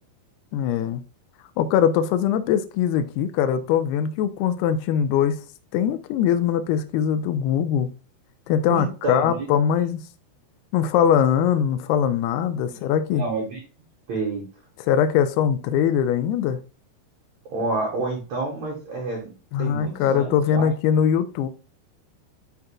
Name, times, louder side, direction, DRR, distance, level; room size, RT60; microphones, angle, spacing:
voice 1, 0.5-1.0 1.6-5.4 5.7-7.9 8.5-10.0 10.7-13.2 14.9-16.6 19.5-21.5, left 8 dB, 80° left, 2.5 m, -21 dB
voice 2, 8.7-9.5 13.1-13.6 14.1-14.4 17.5-19.3 19.6-20.7, right 3 dB, 55° right, 2.2 m, -29 dB
11.5 x 4.0 x 2.4 m
omnidirectional pair, 5.0 m